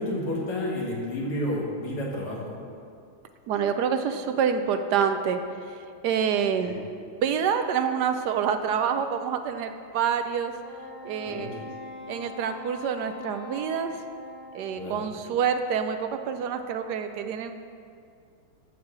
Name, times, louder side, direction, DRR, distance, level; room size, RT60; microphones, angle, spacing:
voice 1, 0.0-2.5 6.6-6.8 11.3-11.6 14.8-15.0, left 1 dB, 80° left, -3 dB, 2.8 m, -31 dB
voice 2, 3.5-5.4 6.0-6.8 7.2-10.5 11.0-11.7 12.1-13.9 14.5-17.5, right 7 dB, 75° right, 7 dB, 0.9 m, -27 dB
Wind instrument woodwind instrument, 10.6-15.2, left 2 dB, 35° left, 2.7 m, -42 dB
12.0 x 4.8 x 7.4 m, 2.4 s
omnidirectional pair, 2.3 m